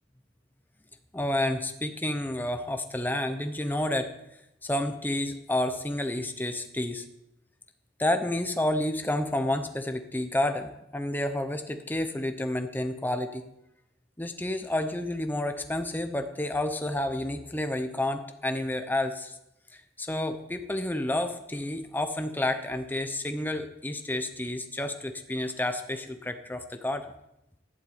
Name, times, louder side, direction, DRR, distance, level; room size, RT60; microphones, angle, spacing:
voice 1, 1.1-4.1 4.6-7.0 8.0-13.4 14.2-19.3 19.7-27.0, left 1 dB, 10° left, 7 dB, 0.8 m, -30 dB
11.5 x 7.9 x 8.9 m, 0.85 s
head